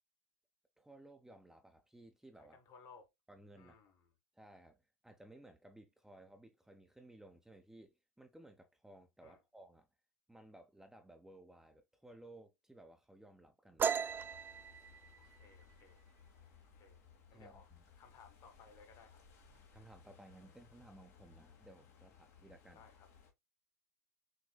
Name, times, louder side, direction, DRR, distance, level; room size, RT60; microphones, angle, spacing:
voice 1, 0.8-2.6 3.3-3.8 4.3-4.8 5.0-9.9 10.3-14.2 17.3-17.8 19.5-22.8, right 1 dB, 5° right, 0.7 m, -58 dB
voice 2, 2.4-3.1 3.5-4.1 9.2-9.4 15.1-16.1 16.6-17.0 17.3-17.7 18.0-19.2 22.7-23.1, left 5 dB, 45° left, 1.4 m, -61 dB
sound 1, 13.8-17.2 17.6-17.9 18.3-18.8 19.1-19.8, right 6 dB, 20° right, 0.3 m, -39 dB
sound 2, 14.1-23.3, left 7 dB, 65° left, 1.4 m, -63 dB
6.5 x 2.7 x 2.2 m
hypercardioid pair, 80°, 9 cm